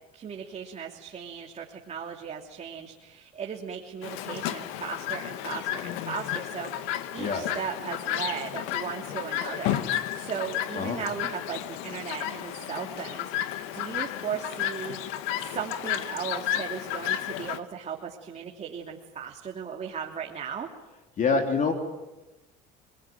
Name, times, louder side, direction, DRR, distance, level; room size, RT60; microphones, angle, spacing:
voice 1, 0.1-20.7, right 7 dB, 35° right, 1 dB, 3.0 m, -37 dB
Chirp tweet, 4.0-17.6, left 11 dB, 75° left, 1.9 m, -32 dB
voice 2, 21.2-21.7, left 4 dB, 40° left, 4 dB, 3.4 m, -25 dB
29.5 x 21.5 x 9.3 m, 1.1 s
supercardioid pair, 105°, 21 cm